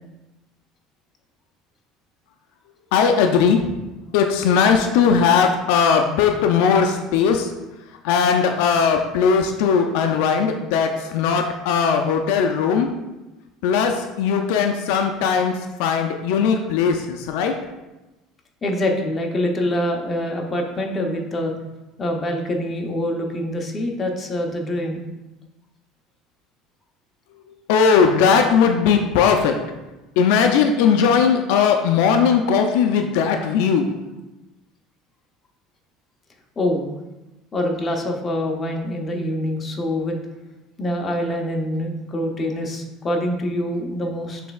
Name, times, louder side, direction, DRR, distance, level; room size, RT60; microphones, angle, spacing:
voice 1, 2.9-3.6 4.1-7.5 8.0-12.9 13.6-15.5 15.8-17.5 27.7-29.5 30.2-33.9, left 6 dB, 80° left, 5 dB, 0.4 m, -18 dB
voice 2, 18.6-21.5 22.0-25.0 36.6-36.8 37.5-40.2 40.8-44.4, left 1 dB, 25° left, 1 dB, 0.7 m, -25 dB
6.2 x 3.3 x 2.3 m, 1.0 s
cardioid pair, 130°, 0 cm